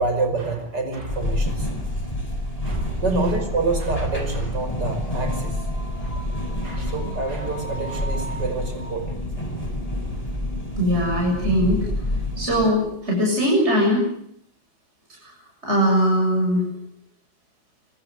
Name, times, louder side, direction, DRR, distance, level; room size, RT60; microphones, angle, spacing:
voice 1, 0.0-1.7 2.6-5.6 6.0-6.2 6.6-9.2, right 3 dB, 75° right, 6 dB, 6.0 m, -27 dB
sound 1, 1.1-12.7, left 1 dB, 20° left, 6.6 m, -28 dB
voice 2, 3.0-3.4 6.7-6.9 10.8-11.9 12.4-14.1 15.2-15.3 15.6-16.7, equal, 35° right, -1 dB, 7.7 m, -21 dB
25.0 x 24.0 x 7.9 m, 0.70 s
omnidirectional pair, 1.9 m